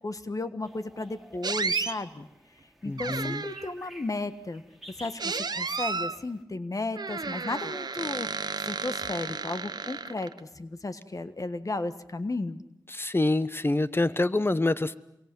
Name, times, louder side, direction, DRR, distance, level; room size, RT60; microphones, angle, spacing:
voice 1, 0.0-2.3 2.8-4.6 4.9-12.6, left 2 dB, 50° left, 10 dB, 1.5 m, -34 dB
sound 1, 0.6-6.4, equal, 5° right, 4.1 m, -52 dB
sound 2, 1.4-1.9 3.0-3.7 5.2-6.2 6.9-10.4, right 4 dB, 70° right, 1.1 m, -32 dB
voice 2, 2.8-3.4 12.9-14.9, left 2 dB, 30° left, 14 dB, 1.2 m, -26 dB
27.0 x 23.5 x 7.8 m, 0.86 s
cardioid pair, 50°, 7 cm